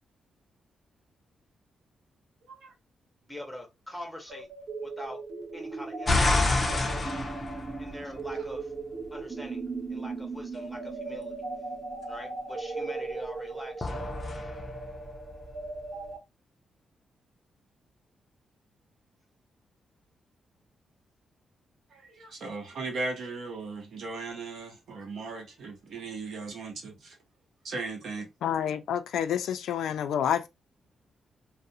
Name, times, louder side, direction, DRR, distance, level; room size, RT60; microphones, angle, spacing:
voice 1, 3.3-4.5 5.0-5.2 5.5-7.1 7.8-8.6 9.1-9.6 9.9-11.3 12.1-13.9, left 1 dB, ahead, 0.8 m, -43 dB
sound 1, 4.3-16.2, right 3 dB, 45° right, 0.6 m, -38 dB
sound 2, 6.1-8.5 13.8-15.9, left 2 dB, 25° left, 0.4 m, -28 dB
voice 2, 21.9-27.2 27.6-28.3, right 3 dB, 65° right, 1.0 m, -37 dB
voice 3, 28.4-30.5, left 9 dB, 85° left, 0.4 m, -28 dB
2.4 x 2.0 x 2.7 m
wide cardioid pair, 140°, 0 cm